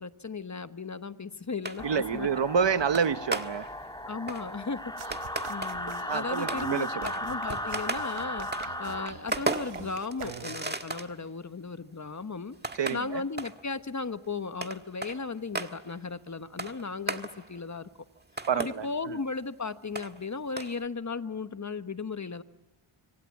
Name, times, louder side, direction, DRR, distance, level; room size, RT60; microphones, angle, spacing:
voice 1, 0.0-2.3 4.0-5.1 5.5-8.5 8.8-12.6 12.9-17.9 18.5-22.4, left 4 dB, 35° left, 11 dB, 1.1 m, -36 dB
sound 1, 1.6-2.3 2.9-3.9 4.3-6.0 6.4-11.2 11.7-11.8 12.5-13.7 14.2-14.3 14.6-16.0 16.6-17.6 18.0-19.0 19.3-19.4 19.9-20.3 20.6-20.8, right 2 dB, 20° right, 1.6 m, -37 dB
sound 2, 1.8-9.1, left 1 dB, 10° left, 1.6 m, -36 dB
voice 2, 1.8-3.6 6.1-7.1 12.8-13.2 18.5-19.2, right 6 dB, 60° right, 12 dB, 1.1 m, -28 dB
sound 3, 5.0-10.8, right 8 dB, 90° right, 1.3 m, -45 dB
26.0 x 24.5 x 8.6 m, 1.2 s
cardioid pair, 65°, 49 cm